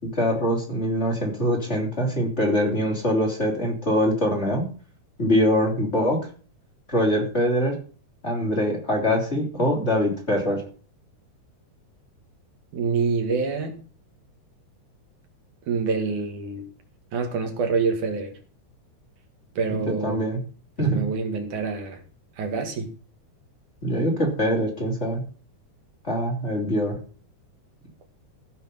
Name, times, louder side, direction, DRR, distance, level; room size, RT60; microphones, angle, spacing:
voice 1, 0.0-4.7 5.2-6.2 6.9-7.7 8.2-10.6 19.7-20.4 20.8-21.0 23.8-25.2 26.0-27.0, equal, 20° left, 0 dB, 3.5 m, -23 dB
voice 2, 12.7-13.8 15.7-16.7 17.1-18.4 19.6-20.2 20.8-22.0 22.4-22.9, right 4 dB, 75° right, 5 dB, 3.5 m, -26 dB
15.0 x 7.2 x 5.6 m, 0.39 s
omnidirectional pair, 3.5 m